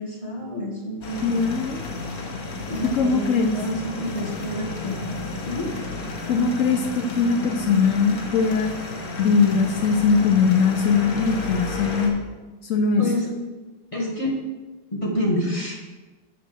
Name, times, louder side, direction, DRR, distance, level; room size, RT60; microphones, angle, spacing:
voice 1, 0.0-1.4 2.7-5.0 5.4-5.7 13.0-13.3 13.9-14.3 14.9-15.8, equal, 20° left, -2 dB, 1.4 m, -28 dB
sound 1, 1.0-12.1, left 3 dB, 55° left, 1.5 m, -32 dB
voice 2, 1.2-1.9 2.8-3.6 6.3-8.8 9.2-12.2 12.6-13.0, left 5 dB, 80° left, 5 dB, 0.7 m, -21 dB
6.8 x 5.5 x 6.6 m, 1.2 s
omnidirectional pair, 2.0 m